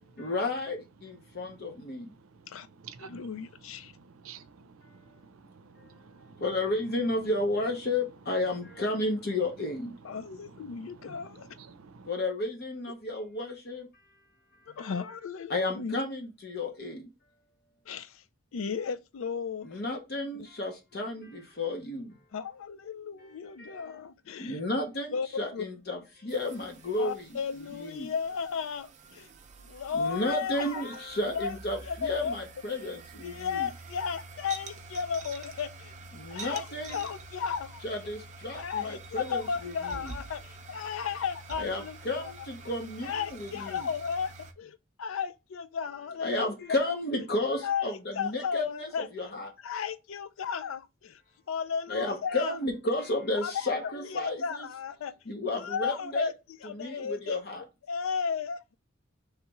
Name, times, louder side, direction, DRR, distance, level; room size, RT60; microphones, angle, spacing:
voice 1, 0.2-2.1 6.4-9.9 12.1-13.9 14.8-15.0 15.5-17.1 19.6-22.2 23.6-24.0 24.4-27.4 27.8-28.1 29.9-33.7 36.1-37.0 37.8-40.1 41.6-43.9 46.2-49.5 51.9-54.7 55.3-56.3 56.6-57.6, left 2 dB, 50° left, 0.8 m, -32 dB
voice 2, 1.8-3.3 3.8-6.4 10.1-12.1, right 6 dB, 90° right, 0.5 m, -52 dB
voice 3, 3.0-3.9 10.0-11.5 14.7-15.9 17.9-18.2 18.5-19.8 22.3-24.6 25.1-25.7 27.0-29.3 29.6-30.9 31.3-32.4 33.2-35.9 36.3-37.8 38.5-42.3 43.0-46.8 47.6-49.1 49.6-51.2 51.5-52.6 53.4-55.1 55.6-56.3 56.6-57.4 57.9-58.8, left 6 dB, 75° left, 0.4 m, -34 dB
sound 1, 26.3-44.5, right 3 dB, 35° right, 0.5 m, -47 dB
3.3 x 3.0 x 4.6 m
head